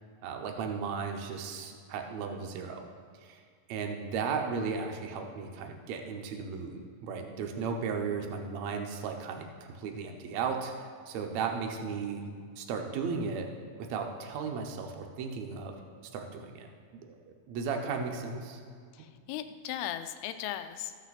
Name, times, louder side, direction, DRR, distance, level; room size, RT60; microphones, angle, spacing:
voice 1, 0.2-2.9 3.1-3.4 3.7-10.7 11.1-13.5 13.8-15.7 16.0-16.7 16.9-17.2 17.5-18.6 19.0-19.1, right 5 dB, 85° right, 3 dB, 1.5 m, -35 dB
voice 2, 18.9-21.0, left 11 dB, 85° left, 10 dB, 2.5 m, -37 dB
14.5 x 6.1 x 4.1 m, 2.1 s
omnidirectional pair, 4.5 m